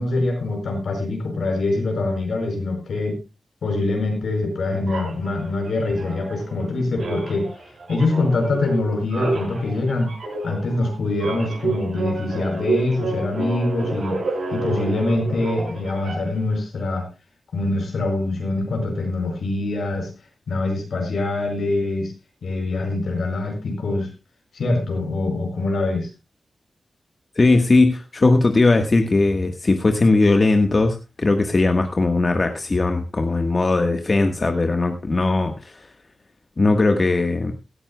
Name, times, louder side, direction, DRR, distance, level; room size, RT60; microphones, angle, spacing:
voice 1, 0.0-3.2 3.6-7.5 7.9-10.1 10.4-14.2 14.5-17.1 17.5-20.1 20.5-22.1 22.4-24.1 24.5-26.1, left 2 dB, 80° left, 3 dB, 5.0 m, -24 dB
sound 1, 4.9-6.7 7.0-16.5, right 3 dB, 85° right, 5.8 m, -29 dB
voice 2, 27.4-35.9 36.6-37.5, left 3 dB, 45° left, 5 dB, 1.4 m, -19 dB
17.5 x 12.5 x 2.3 m, 0.27 s
cardioid pair, 60°, 0 cm